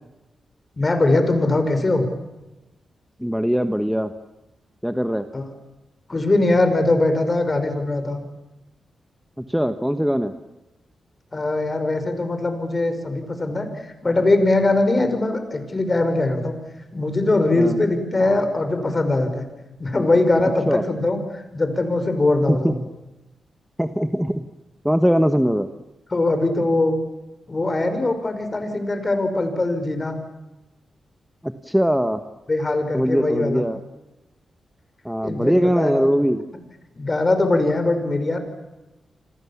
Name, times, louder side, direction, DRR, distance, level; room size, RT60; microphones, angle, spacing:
voice 1, 0.8-2.1 5.3-5.5 6.1-8.2 11.3-16.5 16.9-19.4 19.8-22.8 26.1-27.0 27.5-30.2 32.5-33.6 35.2-36.1 37.0-38.4, left 2 dB, 30° left, 8 dB, 5.4 m, -21 dB
voice 2, 3.2-4.1 4.8-5.3 9.4-10.3 17.5-17.8 20.7-20.8 22.5-22.7 23.8-24.5 24.8-25.7 31.4-32.2 32.9-33.8 35.0-36.4, equal, ahead, 8 dB, 1.2 m, -21 dB
29.5 x 25.5 x 7.3 m, 1.0 s
wide cardioid pair, 105°, 0 cm